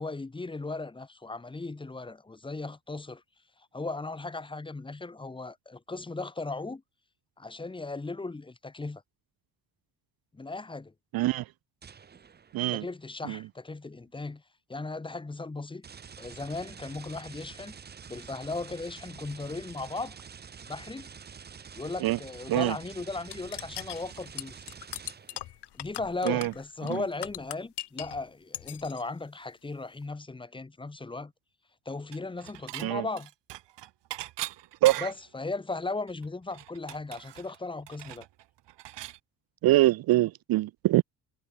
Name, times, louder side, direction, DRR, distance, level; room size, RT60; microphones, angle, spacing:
voice 1, 0.0-3.2 3.7-6.8 7.4-9.0 10.3-10.9 12.7-14.4 14.7-15.9 16.2-17.8 18.1-20.2 20.6-21.1 21.8-24.7 25.7-31.3 31.9-33.3 35.0-38.3, left 3 dB, 10° left, 2.0 m, -37 dB
voice 2, 11.1-11.4 12.5-12.8 13.3-13.4 22.0-22.2 22.5-22.7 26.2-26.5 26.9-27.0 32.8-33.0 34.8-35.1 39.6-41.0, right 16 dB, 60° right, 0.6 m, -24 dB
sound 1, 11.8-12.8 15.8-25.6, right 6 dB, 25° right, 1.2 m, -47 dB
sound 2, 23.3-28.2 28.5-29.0, left 14 dB, 70° left, 4.8 m, -40 dB
Dishes pots and pans / Chink clink, 32.1-32.9 33.2-35.3 35.7-35.8 36.1-39.2, right 15 dB, 90° right, 2.8 m, -41 dB
cardioid pair, 180°, 41 cm